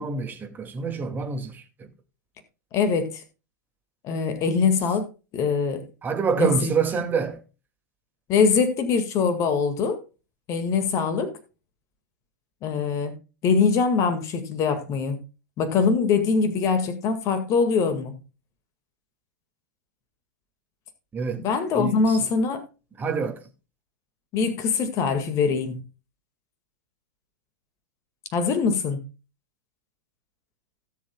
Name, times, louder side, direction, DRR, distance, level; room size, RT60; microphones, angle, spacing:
voice 1, 0.0-1.9 6.0-7.4 21.1-21.4 21.8-22.3 23.0-23.4, right 5 dB, 20° right, 2.3 m, -27 dB
voice 2, 2.7-3.2 4.0-5.8 6.4-6.7 8.3-10.0 10.5-11.3 12.6-13.1 13.4-15.2 15.6-18.2 21.4-22.6 24.3-25.8 28.3-29.0, left 5 dB, 35° left, 1.9 m, -23 dB
17.5 x 7.2 x 2.3 m
figure-of-eight pair, 100°, 9 cm